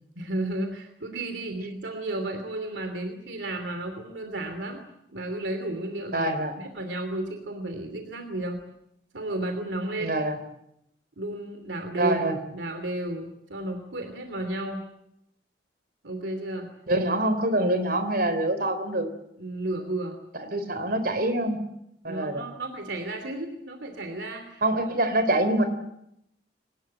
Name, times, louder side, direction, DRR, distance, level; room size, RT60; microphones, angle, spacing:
voice 1, 0.1-4.8 5.1-6.3 6.6-8.6 9.1-10.1 11.2-12.2 12.5-14.8 16.0-16.7 19.4-20.2 22.1-24.6, right 1 dB, 90° right, 6 dB, 3.0 m, -33 dB
voice 2, 6.1-6.6 10.0-10.4 11.9-12.4 16.9-19.1 20.4-21.6 22.0-22.4 24.6-25.6, right 1 dB, 55° right, 9 dB, 3.7 m, -25 dB
23.5 x 20.0 x 8.8 m, 0.80 s
head